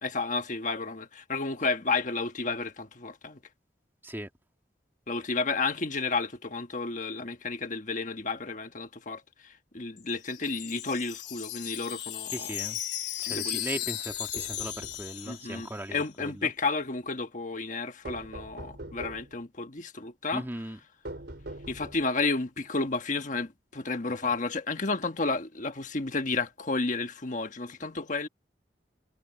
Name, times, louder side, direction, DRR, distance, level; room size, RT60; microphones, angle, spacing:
voice 1, 0.0-3.4 5.1-12.6 13.3-13.8 15.2-20.4 21.7-28.3, left 3 dB, 45° left, 1.4 m, -32 dB
Wind chime, 10.0-16.0, left 12 dB, 70° left, 3.0 m, -36 dB
voice 2, 12.3-12.8 13.2-16.5 20.3-20.8, right 1 dB, 15° right, 2.0 m, -38 dB
sound 1, 14.1-15.1 18.0-19.4 21.0-22.2, right 1 dB, 70° right, 4.2 m, -43 dB
head